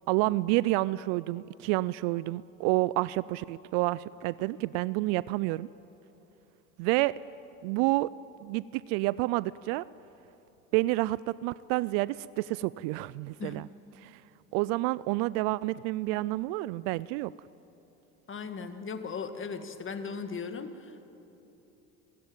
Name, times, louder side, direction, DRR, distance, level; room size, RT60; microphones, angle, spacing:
voice 1, 0.1-5.7 6.8-7.1 7.6-8.1 8.4-9.8 10.7-13.7 14.0-14.2 14.5-17.3, right 19 dB, 65° right, 19 dB, 0.5 m, -29 dB
voice 2, 18.3-21.0, left 5 dB, 30° left, 8 dB, 1.9 m, -37 dB
23.0 x 14.5 x 9.1 m, 3.0 s
hypercardioid pair, 75°, 39 cm